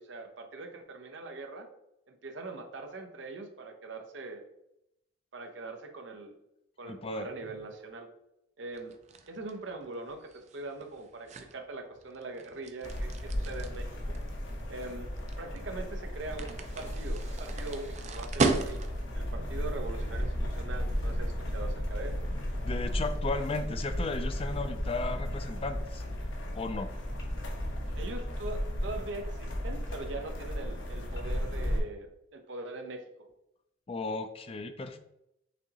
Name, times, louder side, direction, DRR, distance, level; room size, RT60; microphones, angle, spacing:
voice 1, 0.0-1.7 2.1-4.4 5.3-6.3 6.8-8.1 8.6-8.9 9.3-14.0 14.7-15.1 15.4-18.8 19.1-22.1 28.0-33.3, right 2 dB, 80° right, 5 dB, 0.7 m, -42 dB
voice 2, 6.9-7.3 22.6-26.0 26.5-26.9 33.9-35.0, left 3 dB, 30° left, 8 dB, 0.4 m, -35 dB
sound 1, 8.7-19.2, right 3 dB, 40° right, 0.4 m, -36 dB
sound 2, 12.8-31.8, equal, 85° left, 0.8 m, -34 dB
6.1 x 2.9 x 2.8 m, 0.82 s
head